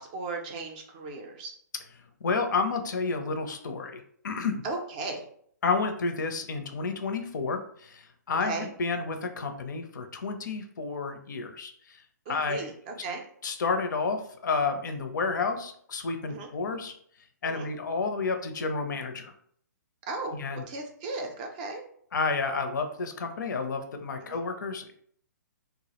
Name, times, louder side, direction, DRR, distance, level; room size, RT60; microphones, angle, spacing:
voice 1, 0.0-1.5 4.6-5.2 8.4-8.7 12.3-13.2 16.3-16.5 17.4-17.7 20.1-20.4 20.7-21.8 24.2-24.4, right 3 dB, 25° right, 3 dB, 0.4 m, -36 dB
voice 2, 2.2-4.6 5.6-12.0 12.3-12.7 13.4-16.9 17.4-19.3 20.4-20.6 22.1-24.9, left 4 dB, 75° left, 6 dB, 0.5 m, -30 dB
2.2 x 2.0 x 2.8 m, 0.62 s
hypercardioid pair, 155°, 10 cm